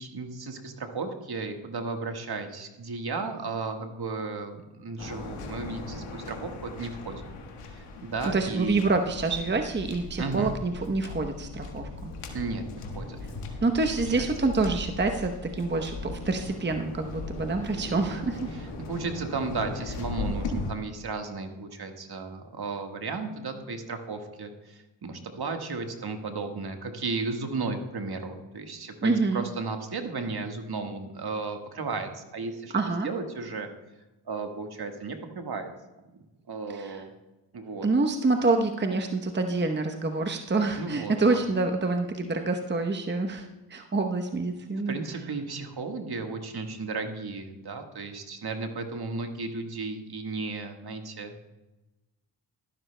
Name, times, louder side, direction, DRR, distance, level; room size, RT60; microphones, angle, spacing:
voice 1, 0.0-7.2 7.6-8.8 10.2-10.5 12.3-13.2 13.9-14.3 18.5-33.7 34.3-35.7 36.5-37.1 37.5-37.9 40.8-41.4 44.9-51.3, right 4 dB, 50° right, 5 dB, 1.6 m, -34 dB
Waves surf, 5.0-20.7, left 3 dB, 90° left, 1.5 m, -38 dB
voice 2, 8.3-12.1 13.6-18.5 29.0-29.4 32.7-33.1 36.8-37.0 37.8-44.9, right 3 dB, 20° right, 5 dB, 0.9 m, -27 dB
12.5 x 12.0 x 2.2 m, 1.0 s
supercardioid pair, 45°, 49 cm